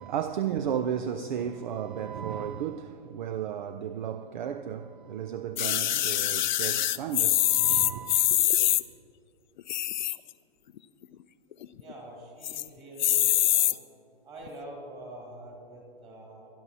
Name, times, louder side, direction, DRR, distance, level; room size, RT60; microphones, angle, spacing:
voice 1, 0.0-8.5, right 8 dB, 50° right, 0.5 m, -34 dB
sound 1, 5.6-8.8 9.6-10.3 10.8-10.9 11.0-11.1 11.5-11.9 12.4-12.7 13.0-13.7 14.5-14.6, left 12 dB, 50° left, 0.5 m, -24 dB
voice 2, 11.7-13.7 14.2-16.5, right 1 dB, 20° right, 2.9 m, -45 dB
22.5 x 11.5 x 2.8 m
hypercardioid pair, 155°, 30 cm